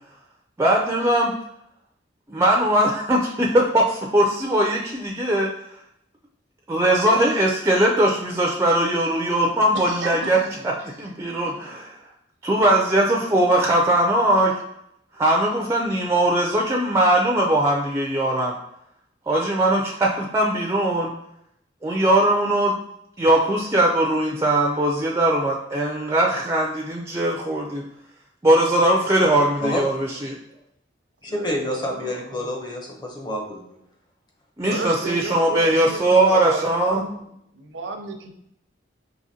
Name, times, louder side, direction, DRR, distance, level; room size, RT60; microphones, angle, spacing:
voice 1, 0.6-1.3 2.3-5.5 6.7-10.7 11.0-11.9 12.4-14.6 15.2-18.6 19.3-21.1 21.8-22.8 23.2-27.8 28.4-30.4 34.6-37.0, right 1 dB, 15° right, -1 dB, 0.4 m, -20 dB
voice 2, 9.7-10.7 31.3-32.5 34.7-37.2 37.5-38.4, right 3 dB, 80° right, 4 dB, 0.6 m, -33 dB
voice 3, 31.2-33.6, equal, 25° left, 1 dB, 0.7 m, -28 dB
4.9 x 2.9 x 2.7 m, 0.75 s
head